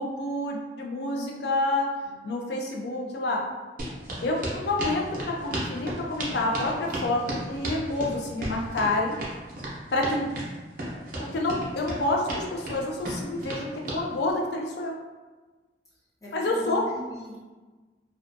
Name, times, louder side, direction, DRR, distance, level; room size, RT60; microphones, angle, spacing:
voice 1, 0.0-1.9 2.2-3.4 4.2-9.2 9.9-10.3 11.2-14.9 16.3-16.8, left 2 dB, 70° left, 0 dB, 0.4 m, -28 dB
voice 2, 2.0-2.4 16.2-17.4, right 1 dB, 20° left, -8 dB, 0.7 m, -42 dB
sound 1, 3.8-14.0, right 1 dB, 50° right, 0.6 m, -34 dB
2.4 x 2.3 x 2.5 m, 1.3 s
head